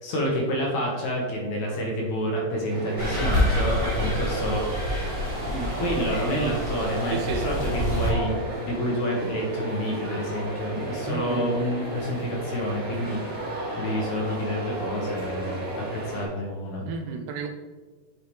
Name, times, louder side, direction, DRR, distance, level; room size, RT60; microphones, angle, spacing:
voice 1, 0.0-4.7 5.4-7.2 7.4-16.9, equal, 65° left, -1 dB, 2.2 m, -28 dB
sound 1, 2.7-16.3, right 1 dB, 50° right, 3.0 m, -34 dB
sound 2, 3.0-8.1, equal, 30° right, 1.8 m, -27 dB
voice 2, 7.1-7.5 11.1-11.5 16.2-16.3 16.9-17.5, right 5 dB, 80° right, 4 dB, 2.0 m, -32 dB
8.5 x 4.7 x 3.2 m, 1.4 s
omnidirectional pair, 3.9 m